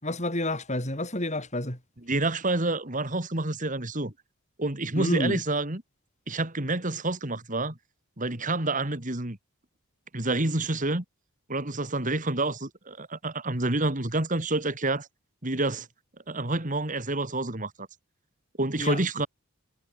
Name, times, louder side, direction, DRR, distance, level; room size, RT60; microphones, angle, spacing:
voice 1, 0.0-1.8 5.0-5.4 18.8-19.0, left 1 dB, 30° left, 6.4 m, -29 dB
voice 2, 2.1-4.1 4.6-5.8 6.3-7.8 8.2-9.4 10.1-11.0 11.5-15.1 15.4-15.9 16.3-17.9 18.6-19.3, right 2 dB, 35° right, 2.7 m, -28 dB
head